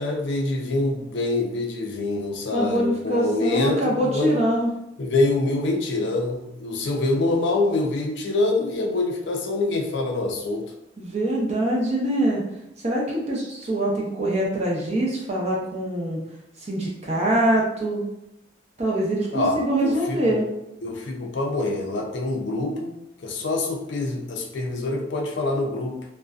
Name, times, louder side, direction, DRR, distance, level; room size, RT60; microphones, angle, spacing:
voice 1, 0.0-4.4 5.0-10.7 19.3-20.4 20.8-26.0, left 2 dB, 60° left, 2 dB, 0.4 m, -25 dB
voice 2, 2.5-4.7 11.0-12.4 12.8-16.2 16.6-18.0 18.8-20.4, right 1 dB, 35° right, -3 dB, 0.5 m, -24 dB
2.5 x 2.1 x 2.3 m, 0.85 s
head